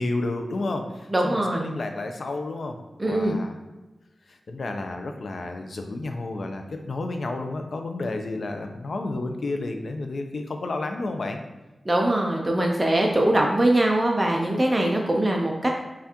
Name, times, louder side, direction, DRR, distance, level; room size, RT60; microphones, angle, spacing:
voice 1, 0.0-3.6 4.3-11.4, left 2 dB, 65° left, 5 dB, 0.5 m, -31 dB
voice 2, 1.1-1.7 3.0-3.4 11.9-15.7, right 1 dB, 20° right, 0 dB, 0.4 m, -22 dB
5.6 x 2.4 x 2.8 m, 1.1 s
wide cardioid pair, 110°, 0 cm